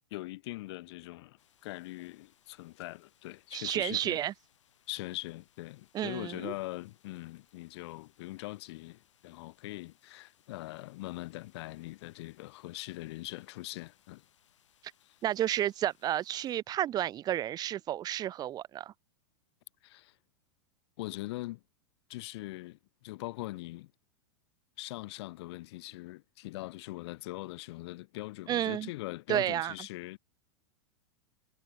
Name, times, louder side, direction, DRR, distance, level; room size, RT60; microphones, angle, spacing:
voice 1, 0.1-4.2 4.9-14.2 15.0-15.2 19.8-20.2 21.0-21.6 22.1-23.9 24.8-30.2, left 19 dB, 60° left, 0.9 m, -42 dB
sound 1, 1.4-16.6, left 10 dB, 85° left, 5.2 m, -69 dB
voice 2, 3.5-4.3 5.9-6.5 15.2-18.9 28.5-28.9 29.3-29.7, right 12 dB, 25° right, 0.5 m, -31 dB
hypercardioid pair, 120°, 15 cm